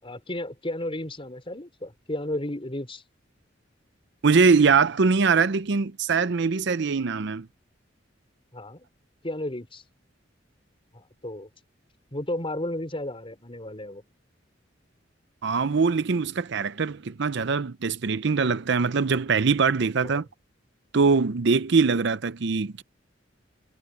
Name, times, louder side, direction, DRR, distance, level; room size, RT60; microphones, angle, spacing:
voice 1, 0.0-3.0 8.5-8.9 9.2-9.8 10.9-11.5 12.1-14.0 20.0-20.2, left 1 dB, 30° left, 4.7 m, -33 dB
voice 2, 4.2-7.5 15.4-20.2 20.9-22.8, right 5 dB, 65° right, 0.6 m, -22 dB
head